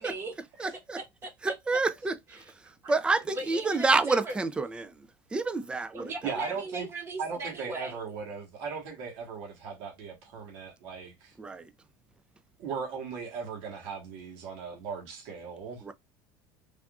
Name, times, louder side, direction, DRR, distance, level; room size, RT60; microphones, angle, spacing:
voice 1, 0.0-0.7 1.0-1.5 2.3-2.9 3.2-4.4 5.9-8.0, right 2 dB, 30° right, 1.0 m, -39 dB
voice 2, 0.6-1.0 1.4-2.2 2.9-4.9 5.3-6.1 11.4-11.7 15.9-16.0, right 3 dB, 10° right, 0.3 m, -28 dB
voice 3, 6.2-6.9 7.2-11.3 12.6-15.9, right 5 dB, 70° right, 1.2 m, -38 dB
3.4 x 2.5 x 2.3 m
cardioid pair, 135°, 9 cm